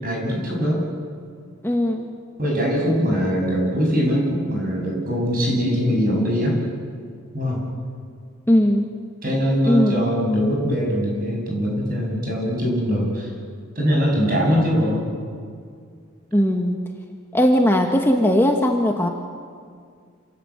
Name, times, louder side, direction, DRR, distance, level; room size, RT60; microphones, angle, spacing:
voice 1, 0.0-0.8 2.4-6.6 7.3-7.6 9.2-13.3 13.7-15.0, equal, 45° right, -1 dB, 8.0 m, -22 dB
voice 2, 1.6-2.0 8.5-8.9 9.6-10.0 16.3-16.8 17.3-19.1, equal, 10° left, 2 dB, 1.4 m, -18 dB
27.5 x 18.0 x 8.8 m, 2.1 s
head